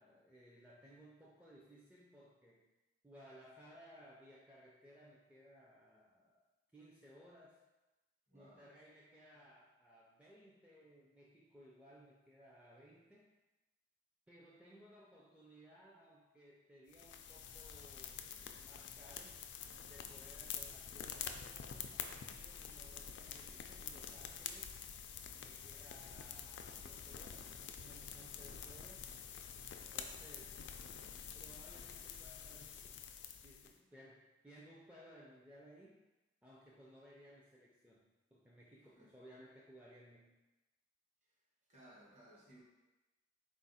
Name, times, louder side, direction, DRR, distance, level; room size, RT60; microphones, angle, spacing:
voice 1, 0.0-2.6 3.0-6.4 6.7-7.6 8.3-13.3 14.3-19.4 19.8-24.7 25.4-29.0 29.7-30.7 31.3-33.0 33.4-36.0 36.4-40.3, equal, 5° right, -5 dB, 0.4 m, -61 dB
voice 2, 8.3-8.7 38.9-39.1 41.2-41.3 41.7-42.6, right 1 dB, 40° right, -5 dB, 1.2 m, -61 dB
sound 1, 16.9-33.7, left 7 dB, 75° left, 0.3 m, -48 dB
4.1 x 2.5 x 4.0 m, 1.1 s
head